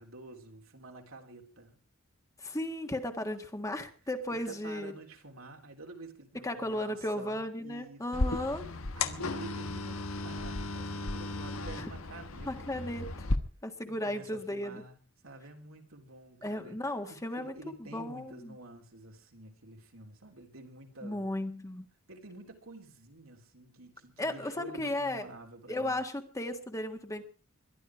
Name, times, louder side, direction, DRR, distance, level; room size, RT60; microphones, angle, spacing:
voice 1, 0.0-1.7 4.3-8.4 8.9-12.9 13.8-15.0 15.2-21.3 22.1-26.0, right 2 dB, 70° right, 3 dB, 3.5 m, -49 dB
voice 2, 2.4-5.0 6.4-8.7 11.7-11.9 12.4-13.1 13.6-14.8 16.4-18.6 21.0-21.8 24.2-25.2 25.7-27.2, left 1 dB, 15° left, 6 dB, 1.7 m, -35 dB
sound 1, 8.1-13.4, left 2 dB, 75° left, 1.4 m, -35 dB
22.0 x 12.5 x 4.8 m, 0.38 s
head